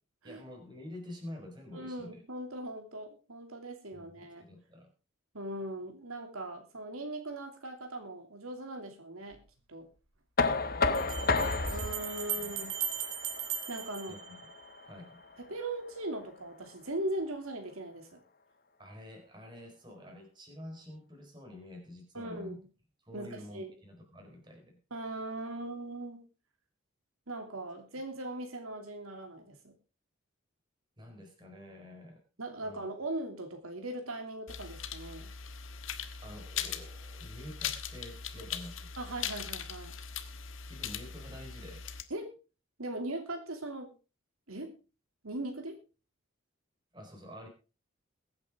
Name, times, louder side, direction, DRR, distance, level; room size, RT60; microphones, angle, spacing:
voice 1, 0.2-2.2 3.9-4.9 10.8-11.9 12.4-12.5 14.1-14.4 14.8-15.2 18.8-22.6 23.0-24.8 31.0-32.2 32.6-32.9 36.2-38.9 40.7-41.9 46.9-47.5, left 1 dB, 20° right, 2 dB, 4.4 m, -48 dB
voice 2, 1.7-4.5 5.3-9.4 9.7-9.9 11.7-12.7 13.7-14.2 15.4-18.2 22.1-22.7 23.1-23.7 24.9-26.2 27.3-29.7 32.4-35.3 39.0-39.9 42.1-42.3 42.8-43.9 44.5-44.8 45.2-45.8, right 1 dB, 80° right, 4 dB, 2.7 m, -39 dB
sound 1, 9.3-9.4 10.9-14.9, right 9 dB, 65° right, 2.5 m, -38 dB
Knock, 10.4-16.2, left 3 dB, 45° left, 1.1 m, -33 dB
sound 2, 34.5-42.0, left 8 dB, 65° left, 1.5 m, -40 dB
22.0 x 8.8 x 3.6 m, 0.32 s
head